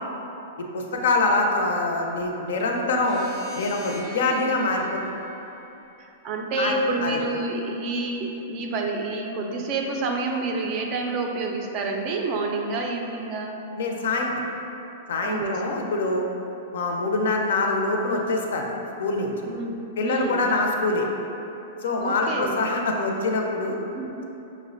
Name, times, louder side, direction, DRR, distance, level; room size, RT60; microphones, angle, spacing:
voice 1, 0.7-3.3 3.6-5.0 6.6-6.7 7.0-7.2 13.8-14.3 15.1-16.2 16.7-19.3 20.0-21.1 21.8-23.8, left 2 dB, 80° left, 2 dB, 0.4 m, -24 dB
sound 1, 2.8-6.1, equal, 20° left, 0.5 m, -43 dB
voice 2, 6.2-13.6 15.2-15.6 19.4-20.5 22.0-22.6 23.9-24.2, right 3 dB, 35° right, 2 dB, 0.3 m, -28 dB
5.3 x 2.0 x 2.5 m, 2.9 s
hypercardioid pair, 150°, 0 cm